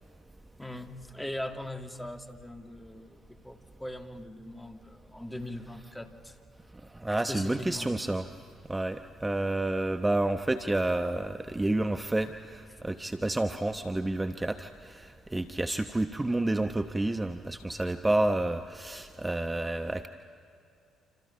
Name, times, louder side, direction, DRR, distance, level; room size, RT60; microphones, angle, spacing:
voice 1, 0.6-6.4 7.1-7.9, left 1 dB, 10° left, 5 dB, 2.1 m, -40 dB
voice 2, 6.9-8.3 8.7-20.1, right 2 dB, 15° right, 8 dB, 1.0 m, -29 dB
28.0 x 27.5 x 5.7 m, 2.5 s
hypercardioid pair, 50°, 0 cm